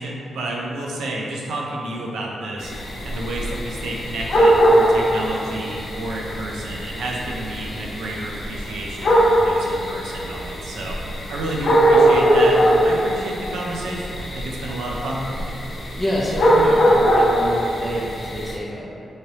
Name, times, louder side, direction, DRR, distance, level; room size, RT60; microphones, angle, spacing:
voice 1, 0.0-2.7 3.0-11.0 11.3-15.6, right 1 dB, 90° right, -2 dB, 0.5 m, -30 dB
sound 1, 2.6-18.5, right 1 dB, 60° left, 0.6 m, -21 dB
voice 2, 16.0-19.1, equal, ahead, -6 dB, 0.6 m, -27 dB
3.1 x 2.8 x 2.8 m, 2.6 s
cardioid pair, 75°, 0 cm